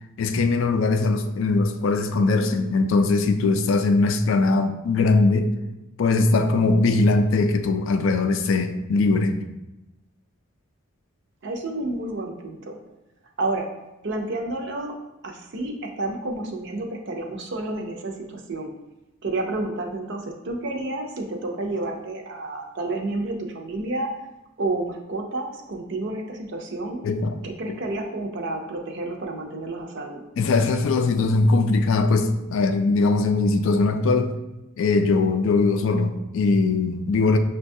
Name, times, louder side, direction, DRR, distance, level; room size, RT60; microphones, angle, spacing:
voice 1, 0.2-5.5 6.0-9.4 27.0-27.4 27.7-27.8 30.4-34.3 34.8-37.4, left 3 dB, 60° left, 7 dB, 0.3 m, -21 dB
voice 2, 11.4-12.8 13.4-13.7 14.0-14.9 15.2-18.7 19.2-24.1 24.6-27.0 27.4-30.2, right 2 dB, 55° right, 2 dB, 0.5 m, -30 dB
6.0 x 2.2 x 2.6 m, 0.96 s
head